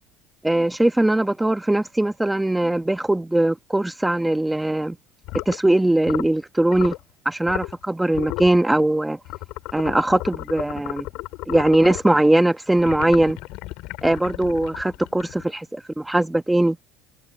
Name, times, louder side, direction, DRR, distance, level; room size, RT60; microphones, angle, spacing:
voice 1, 0.4-5.0 5.5-6.9 7.2-9.2 9.7-11.1 11.5-13.4 14.0-16.8, right 1 dB, 5° right, 1.1 m, -20 dB
sound 1, 5.2-5.6 6.0-6.4 6.7-7.0 7.5-7.8 8.1-8.6 9.3-12.1 12.8-15.6, left 21 dB, 70° left, 5.7 m, -34 dB
supercardioid pair, 120°, 0 cm